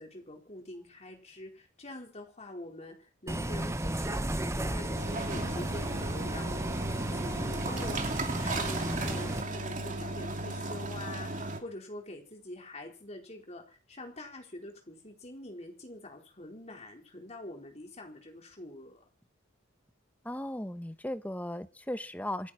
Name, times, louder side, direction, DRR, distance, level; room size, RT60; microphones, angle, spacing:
voice 1, 0.0-6.6 7.0-19.0, left 1 dB, 35° left, 2 dB, 4.3 m, -45 dB
Bus, 3.3-9.4, right 1 dB, 15° right, 0.8 m, -34 dB
sound 1, 4.9-11.6, right 2 dB, 40° right, 2.6 m, -36 dB
voice 2, 20.2-22.5, left 1 dB, 10° left, 10 dB, 1.0 m, -36 dB
27.5 x 10.0 x 4.4 m, 0.35 s
head